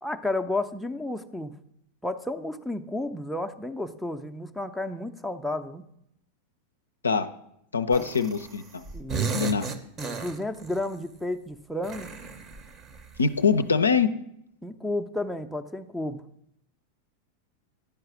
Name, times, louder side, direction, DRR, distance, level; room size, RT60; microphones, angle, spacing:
voice 1, 0.0-1.5 2.0-5.9 7.9-8.1 8.9-9.4 10.0-12.1 14.6-16.2, left 2 dB, ahead, 4 dB, 0.5 m, -32 dB
voice 2, 7.7-8.9 9.3-9.7 13.2-14.1, left 5 dB, 75° left, 10 dB, 0.4 m, -23 dB
sound 1, 7.9-8.6 8.8-10.8 11.8-13.3, right 5 dB, 30° right, 0.7 m, -34 dB
10.5 x 4.7 x 6.0 m, 0.75 s
figure-of-eight pair, 90°, 0 cm